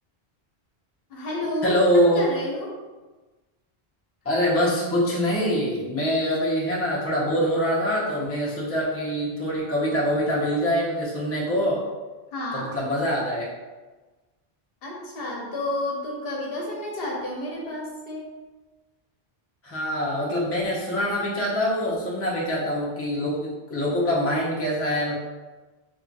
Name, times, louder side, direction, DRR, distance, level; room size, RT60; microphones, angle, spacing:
voice 1, 1.1-1.8 2.2-2.7 12.3-12.7 14.8-18.3, left 1 dB, 65° left, -2 dB, 0.9 m, -31 dB
voice 2, 1.6-2.3 4.2-11.8 12.5-13.5 19.6-25.1, equal, 15° left, -6 dB, 0.7 m, -24 dB
2.9 x 2.4 x 3.9 m, 1.2 s
omnidirectional pair, 1.1 m